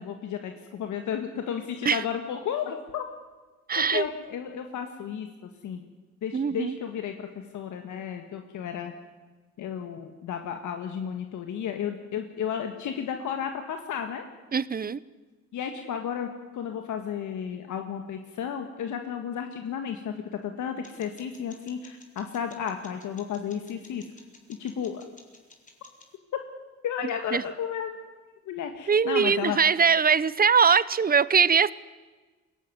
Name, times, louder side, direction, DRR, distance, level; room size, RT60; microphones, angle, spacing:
voice 1, 0.0-3.0 3.8-5.8 6.2-7.3 7.5-8.9 9.6-14.2 15.5-24.0 24.6-25.0 26.8-28.1 28.4-29.6, left 8 dB, 75° left, 5 dB, 1.7 m, -33 dB
voice 2, 3.7-4.0 6.3-6.7 14.5-15.0 27.3-27.4 28.9-31.7, right 6 dB, 30° right, 19 dB, 0.8 m, -22 dB
sound 1, 20.8-26.2, left 2 dB, 25° left, 4.0 m, -55 dB
22.0 x 17.0 x 9.7 m, 1.3 s
cardioid pair, 90°, 30 cm